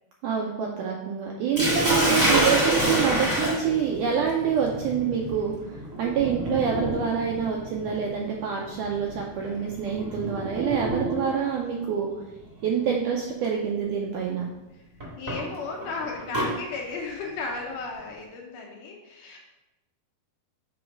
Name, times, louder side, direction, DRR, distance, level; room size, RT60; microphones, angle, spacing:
voice 1, 0.2-12.1 12.6-14.5, right 7 dB, 85° right, -1 dB, 1.8 m, -26 dB
voice 2, 1.5-2.1 15.2-19.4, left 4 dB, 75° left, 0 dB, 2.2 m, -35 dB
Sink (filling or washing), 1.6-11.5 12.6-12.9 13.4-13.5 15.0-16.5, right 1 dB, 25° right, 0.9 m, -27 dB
8.0 x 3.1 x 5.1 m, 1.0 s
omnidirectional pair, 4.3 m